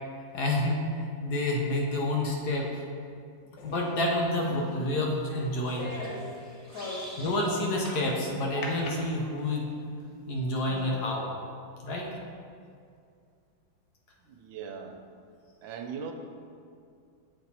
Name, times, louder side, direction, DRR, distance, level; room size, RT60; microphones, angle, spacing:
voice 1, 0.3-2.8 3.6-5.9 7.2-9.9 10.3-11.3 11.8-12.1, left 1 dB, 65° left, -1 dB, 1.2 m, -29 dB
sound 1, 3.6-8.0 8.6-9.7 10.2-10.3 10.7-11.1, left 2 dB, 80° left, 1.5 m, -41 dB
sound 2, 5.7-7.5 7.8-8.0 8.6-8.8, right 1 dB, 10° right, 1.4 m, -45 dB
voice 2, 14.3-15.0 15.6-16.1, right 6 dB, 85° right, 4 dB, 1.4 m, -39 dB
8.2 x 3.4 x 4.1 m, 2.3 s
omnidirectional pair, 2.1 m